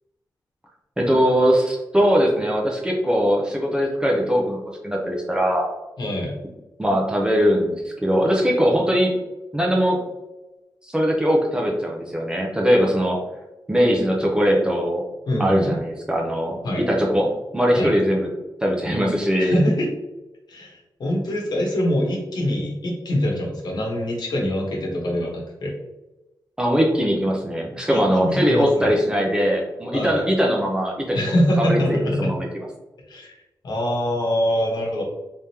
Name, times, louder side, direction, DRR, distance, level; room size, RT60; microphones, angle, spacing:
voice 1, 1.0-4.6 4.8-5.7 6.8-9.1 9.5-10.0 10.8-13.2 13.7-15.0 15.4-18.3 18.6-19.6 26.6-32.5, equal, 10° right, -1 dB, 0.7 m, -21 dB
voice 2, 6.0-6.4 15.3-15.8 16.6-16.8 17.7-17.9 19.4-19.9 20.5-25.7 27.9-29.0 29.9-30.2 31.1-32.3 33.1-33.4 33.6-35.0, equal, 70° left, -2 dB, 1.2 m, -24 dB
3.5 x 3.4 x 2.8 m, 1.0 s
wide cardioid pair, 150°, 8 cm